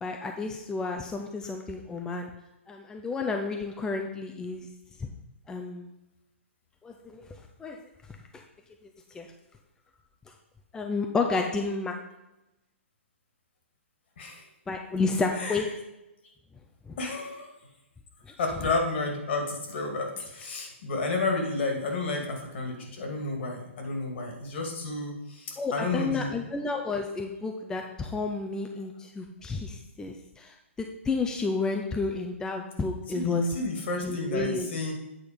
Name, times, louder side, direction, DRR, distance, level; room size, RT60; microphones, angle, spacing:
voice 1, 0.0-2.3 2.7-4.7 5.0-5.1 5.5-6.0 6.8-7.3 7.6-7.8 8.3-8.4 8.8-8.9 9.1-9.3 10.3-10.4 10.7-12.0 14.7-15.7 16.9-17.0 18.3-18.4 25.6-33.5 34.0-34.7, left 3 dB, 10° left, 3 dB, 0.5 m, -31 dB
voice 2, 15.3-15.7 17.0-17.5 18.4-26.5 33.1-34.9, left 3 dB, 60° left, 2 dB, 2.3 m, -31 dB
8.6 x 4.4 x 5.1 m, 0.94 s
hypercardioid pair, 135°, 7 cm